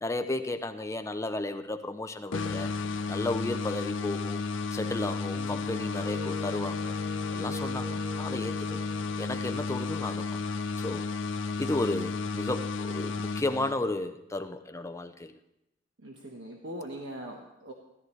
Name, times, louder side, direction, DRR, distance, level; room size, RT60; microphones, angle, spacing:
voice 1, 0.0-2.7 3.1-4.4 4.7-6.9 7.3-8.9 9.2-10.4 10.8-11.0 11.6-15.3, left 2 dB, 15° left, 8 dB, 0.5 m, -33 dB
sound 1, 2.3-14.0, left 4 dB, 90° left, 0.6 m, -33 dB
Wind instrument woodwind instrument, 5.3-9.5, left 1 dB, 50° right, 3.2 m, -43 dB
voice 2, 16.0-17.7, right 1 dB, 90° right, 0 dB, 1.2 m, -41 dB
16.0 x 13.0 x 3.2 m, 0.87 s
head